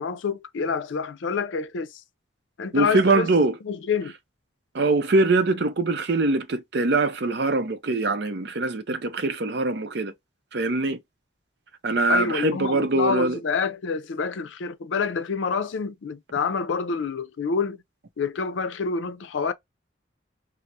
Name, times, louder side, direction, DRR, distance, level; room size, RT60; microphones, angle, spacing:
voice 1, 0.0-2.0 2.6-3.3 3.6-4.1 12.1-17.8 18.2-19.5, left 5 dB, 80° left, 0.5 m, -27 dB
voice 2, 2.7-3.6 4.7-10.1 10.5-11.0 11.8-13.4, right 2 dB, 60° right, 0.6 m, -23 dB
4.5 x 2.0 x 2.5 m
head